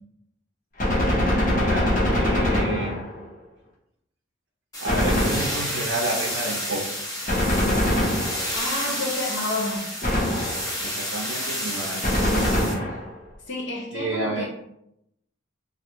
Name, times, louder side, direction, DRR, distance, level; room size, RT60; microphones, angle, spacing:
Gunshot gunfire, 0.8-3.3 4.8-5.9 7.3-8.7 10.0-10.8 12.0-13.2, left 1 dB, 40° left, 0.9 m, -23 dB
voice 1, 1.5-3.0 4.8-6.9 10.8-12.7 13.9-14.5, right 2 dB, 60° right, -1 dB, 0.5 m, -31 dB
sound 1, 4.7-12.7, equal, 15° left, 0.6 m, -30 dB
voice 2, 8.5-9.9 13.5-14.5, left 2 dB, 60° left, -2 dB, 0.5 m, -29 dB
3.2 x 2.4 x 2.9 m, 0.79 s
head